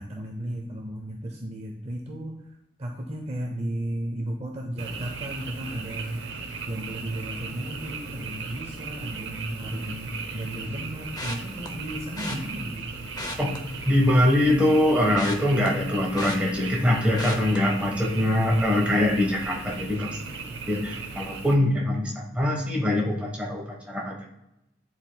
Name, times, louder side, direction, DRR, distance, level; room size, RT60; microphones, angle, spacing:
voice 1, 0.0-6.2 6.7-12.9 18.2-19.0, right 1 dB, 30° right, 1 dB, 0.7 m, -34 dB
Frog, 4.8-21.5, right 4 dB, 65° right, 0.8 m, -37 dB
sound 1, 11.2-11.7 12.2-12.4 13.0-14.3 14.6-16.8 17.2-17.6 18.0-18.3 18.6-18.7, left 2 dB, 20° left, 0.7 m, -36 dB
voice 2, 13.8-20.2 20.7-24.3, left 1 dB, 5° right, -2 dB, 1.3 m, -23 dB
11.0 x 4.5 x 2.3 m, 0.90 s
head